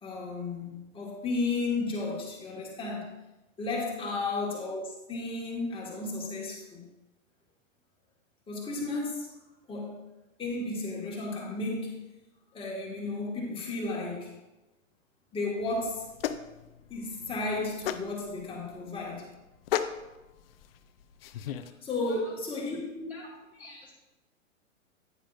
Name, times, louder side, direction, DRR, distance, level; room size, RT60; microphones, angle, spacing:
voice 1, 0.0-3.1 3.6-6.8 8.5-9.3 9.7-10.0 10.4-12.0 12.5-14.3 15.3-16.1 16.9-19.3 21.8-23.1, left 3 dB, 15° left, -3 dB, 2.0 m, -33 dB
sound 1, 15.6-21.7, left 10 dB, 45° left, 0.5 m, -37 dB
voice 2, 22.0-22.6 23.1-23.2 23.5-23.9, left 1 dB, 5° right, -5 dB, 1.0 m, -48 dB
9.6 x 8.8 x 2.6 m, 1.0 s
hypercardioid pair, 130°, 40 cm